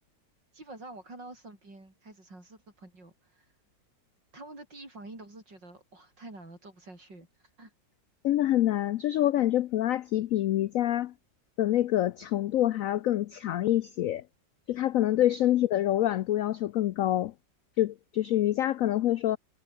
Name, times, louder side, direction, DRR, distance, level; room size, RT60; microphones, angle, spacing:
voice 1, 0.5-3.5 4.3-7.3 7.6-7.7 15.1-15.2, right 2 dB, 70° right, 8.5 m, -47 dB
voice 2, 8.2-11.1 11.6-14.2 14.7-17.3 17.8-19.4, left 13 dB, 80° left, 0.7 m, -26 dB
omnidirectional pair, 2.0 m